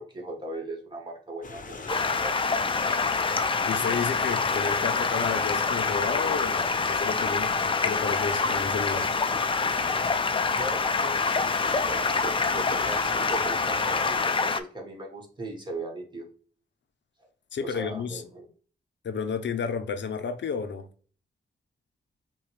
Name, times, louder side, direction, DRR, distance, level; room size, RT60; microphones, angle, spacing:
voice 1, 0.0-2.3 10.5-11.4 11.9-16.2 17.6-18.5, right 1 dB, 25° right, 1.4 m, -38 dB
sound 1, 1.4-14.3, left 4 dB, 45° left, 0.8 m, -41 dB
Stream, 1.9-14.6, left 4 dB, 30° left, 0.4 m, -26 dB
voice 2, 3.6-9.1 17.5-18.2 19.0-20.9, left 6 dB, 85° left, 0.6 m, -32 dB
5.6 x 2.3 x 3.2 m
wide cardioid pair, 110°, 18 cm